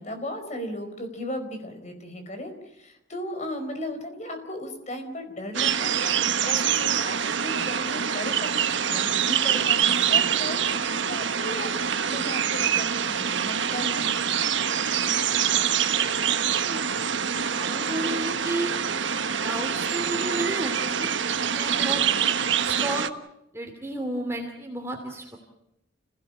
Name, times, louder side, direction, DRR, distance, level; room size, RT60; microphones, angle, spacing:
voice 1, 0.0-14.4 17.2-17.6 21.8-22.3, left 1 dB, 35° left, 7 dB, 4.8 m, -36 dB
sound 1, 5.5-23.1, right 8 dB, 75° right, 1.3 m, -25 dB
voice 2, 17.6-18.7 19.4-21.1 21.5-22.0 22.6-23.1 23.5-25.4, right 1 dB, 15° right, 2 dB, 2.8 m, -32 dB
29.5 x 17.0 x 8.7 m, 0.82 s
head